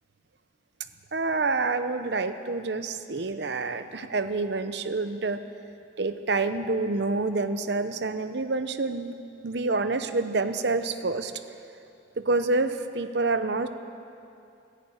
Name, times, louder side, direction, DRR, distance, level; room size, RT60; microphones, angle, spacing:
voice 1, 1.1-5.4 6.0-9.1 9.4-11.3 12.2-13.7, right 3 dB, 60° right, 10 dB, 0.7 m, -27 dB
15.5 x 10.0 x 8.8 m, 2.6 s
head